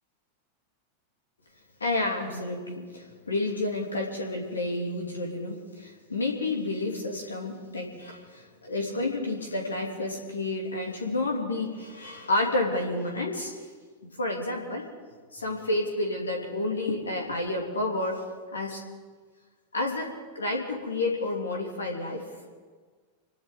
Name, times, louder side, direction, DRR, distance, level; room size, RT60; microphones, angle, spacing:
voice 1, 1.8-13.7 14.0-14.9 15.3-18.2 18.5-18.8 19.7-22.3, left 2 dB, 75° left, 0 dB, 2.9 m, -30 dB
28.5 x 12.0 x 3.9 m, 1.5 s
figure-of-eight pair, 90°, 0 cm